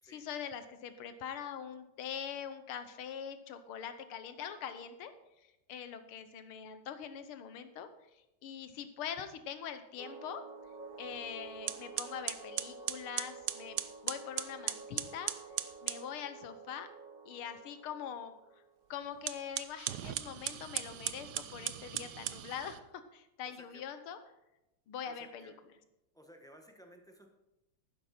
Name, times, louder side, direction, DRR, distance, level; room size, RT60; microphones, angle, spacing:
voice 1, 0.0-5.1 5.7-7.9 8.4-10.4 11.0-13.8 14.0-15.3 15.8-16.9 17.3-18.3 18.9-24.2 24.9-25.5, left 8 dB, 80° left, 10 dB, 1.8 m, -43 dB
sound 1, 10.0-19.0, right 4 dB, 40° right, 0.6 m, -50 dB
sound 2, 11.1-11.3 11.7-16.1 19.1-22.8, right 12 dB, 75° right, 0.9 m, -38 dB
voice 2, 23.4-23.8 25.0-25.5 26.1-27.3, equal, 5° left, 3 dB, 0.8 m, -57 dB
12.0 x 10.0 x 4.3 m, 0.91 s
omnidirectional pair, 2.4 m